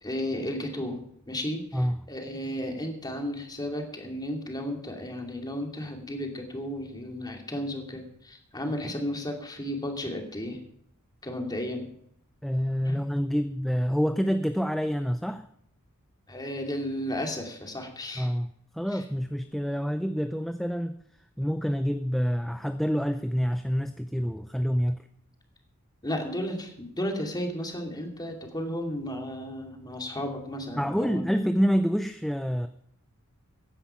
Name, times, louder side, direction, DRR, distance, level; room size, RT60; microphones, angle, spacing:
voice 1, 0.0-1.8 2.1-10.6 11.2-11.9 12.9-13.0 16.3-18.3 26.0-31.2, left 1 dB, 20° left, 3 dB, 2.5 m, -33 dB
voice 2, 12.4-15.5 18.2-21.0 21.4-25.0 30.8-32.7, equal, ahead, 8 dB, 0.5 m, -27 dB
15.5 x 10.0 x 5.8 m, 0.71 s
head